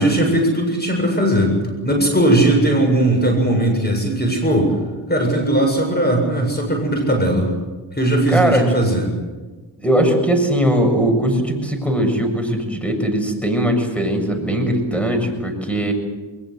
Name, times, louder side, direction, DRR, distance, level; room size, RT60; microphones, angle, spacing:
voice 1, 0.0-1.6 1.8-4.7 5.1-7.5 7.9-9.1, right 1 dB, 20° left, 3 dB, 7.4 m, -18 dB
voice 2, 8.3-8.6 9.8-15.9, right 1 dB, 5° left, 5 dB, 7.2 m, -19 dB
22.0 x 21.5 x 8.0 m, 1.3 s
cardioid pair, 75°, 47 cm